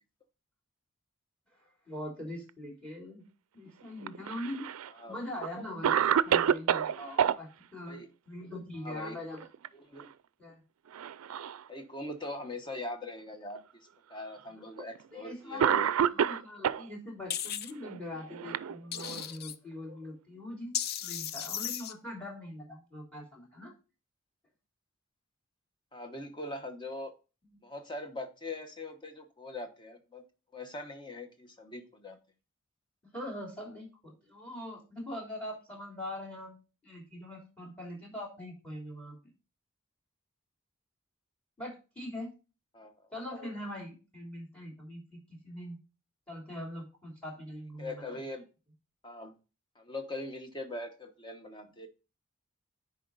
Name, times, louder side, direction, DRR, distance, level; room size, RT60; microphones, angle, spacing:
voice 1, 1.5-3.2 3.5-4.7 5.1-9.5 10.4-10.6 14.5-14.6 15.1-15.7 16.1-23.7 33.1-36.6 36.8-39.2 41.6-42.3 43.1-45.2 45.4-45.8 46.3-48.2, left 1 dB, 5° left, 1 dB, 3.1 m, -42 dB
Cough, 4.0-4.9 5.4-5.5 5.8-7.4 9.2-9.7 10.0-10.1 10.9-11.6 12.4-12.5 13.6-13.7 14.8-15.0 15.6-16.9 17.8-19.3, right 8 dB, 85° right, 0.4 m, -28 dB
voice 2, 8.8-9.2 9.7-10.1 11.7-16.2 25.9-27.1 27.6-30.2 30.5-32.2 42.7-43.1 47.8-48.5 49.0-49.3 49.7-51.9, left 2 dB, 20° left, 5 dB, 1.0 m, -42 dB
sound 1, 17.3-17.7 18.9-19.5 20.7-21.9, left 10 dB, 45° left, 0.5 m, -35 dB
10.0 x 4.4 x 4.0 m, 0.32 s
head